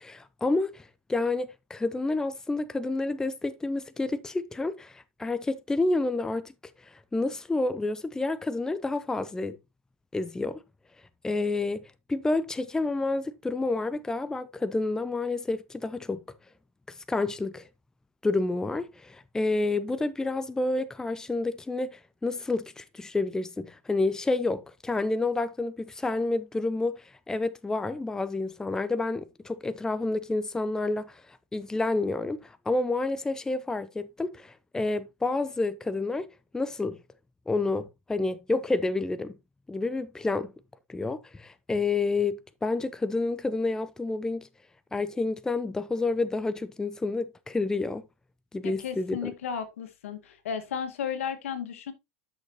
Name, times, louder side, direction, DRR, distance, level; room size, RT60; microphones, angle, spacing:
voice 1, 0.0-6.5 6.8-9.6 10.1-10.6 11.2-16.2 16.9-17.7 18.2-36.3 36.5-37.0 37.5-39.4 39.7-40.5 40.9-44.5 44.9-48.1 48.5-49.3, left 3 dB, 10° left, 0.7 m, -29 dB
voice 2, 48.6-51.9, left 7 dB, 85° left, 2.1 m, -34 dB
11.0 x 6.5 x 3.0 m
hypercardioid pair, 115°, 7 cm